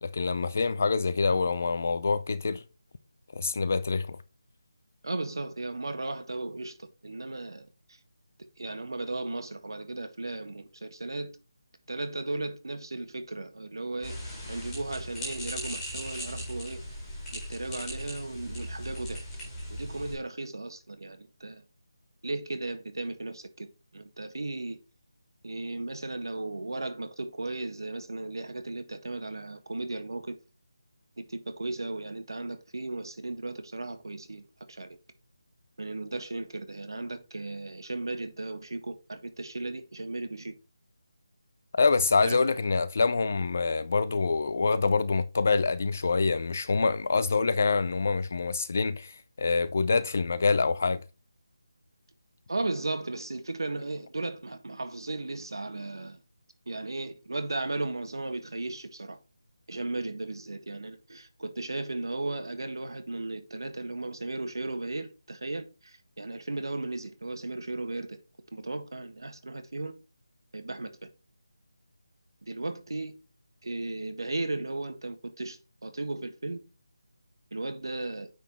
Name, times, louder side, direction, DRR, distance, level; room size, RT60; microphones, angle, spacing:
voice 1, 0.0-2.6 3.3-4.2 41.8-51.0, left 4 dB, 30° left, 0.4 m, -26 dB
voice 2, 5.0-8.0 8.6-11.4 11.9-16.8 17.3-19.2 19.7-21.6 22.2-23.7 23.9-24.8 25.4-30.4 31.2-35.0 35.8-40.6 42.2-42.4 52.5-56.2 56.7-59.2 59.7-68.2 68.5-69.9 70.5-70.9 72.4-73.1 73.6-76.6 77.5-78.3, right 2 dB, 85° right, 1.5 m, -36 dB
sound 1, 14.0-20.1, equal, 5° left, 2.0 m, -38 dB
9.1 x 4.1 x 4.4 m
figure-of-eight pair, 180°, 2 cm